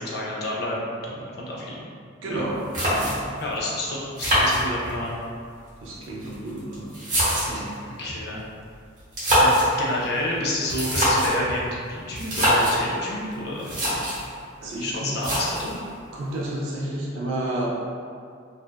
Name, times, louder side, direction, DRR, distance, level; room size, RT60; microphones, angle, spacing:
voice 1, 0.0-1.9 2.3-2.4 3.4-5.2 8.0-8.4 9.3-9.5 9.8-14.0 14.8-15.8, left 1 dB, 50° left, -4 dB, 0.5 m, -29 dB
voice 2, 2.2-3.2 5.8-6.9 7.4-7.8 14.6-15.2 16.1-17.7, right 1 dB, 75° right, -4 dB, 0.5 m, -31 dB
sound 1, 2.4-2.5 2.7-3.4 4.2-5.1 6.0-7.7 9.0-9.8 10.6-11.4 12.2-12.8 13.3-13.4 13.6-14.3 15.2-15.8, equal, 40° right, 0.9 m, -23 dB
2.6 x 2.3 x 2.2 m, 2.3 s
head